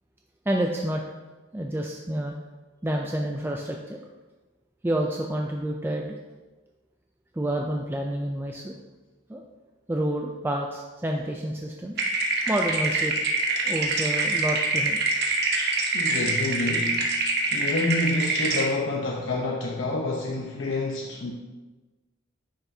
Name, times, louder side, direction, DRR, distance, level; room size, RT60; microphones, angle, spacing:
voice 1, 0.5-1.0 1.5-2.4 2.8-4.0 4.8-6.2 7.3-8.7 9.3-9.4 9.9-12.0 12.5-13.1 13.7-15.0, right 1 dB, 10° right, 0 dB, 0.4 m, -28 dB
sound 1, 12.0-18.7, right 3 dB, 55° right, 1.0 m, -25 dB
voice 2, 15.9-17.0 17.5-21.3, left 2 dB, 70° left, -2 dB, 0.8 m, -28 dB
9.9 x 5.7 x 2.7 m, 1.2 s
head